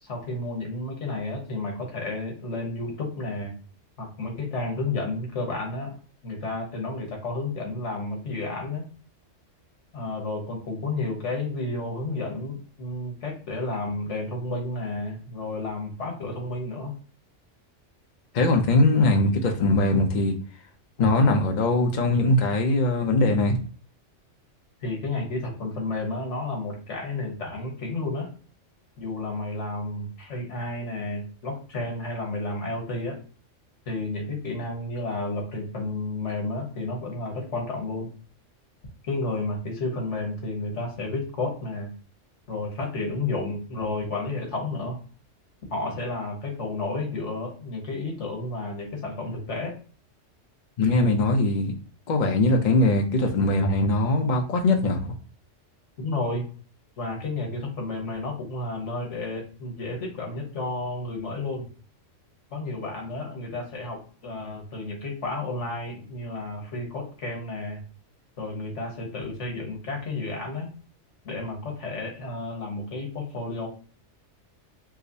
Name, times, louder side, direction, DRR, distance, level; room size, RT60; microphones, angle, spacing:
voice 1, 0.0-3.5 4.0-5.9 6.2-8.8 9.9-16.9 24.8-28.3 29.0-33.2 33.9-38.1 39.0-41.9 42.5-45.0 45.7-49.8 56.0-56.5 57.0-61.7 62.5-67.8 68.4-70.7 71.2-73.7, left 2 dB, 70° left, 1 dB, 1.4 m, -31 dB
voice 2, 18.3-20.4 21.0-23.6 50.8-51.7 52.1-55.1, left 2 dB, 50° left, 3 dB, 0.6 m, -21 dB
4.8 x 2.1 x 2.6 m, 0.40 s
omnidirectional pair, 1.3 m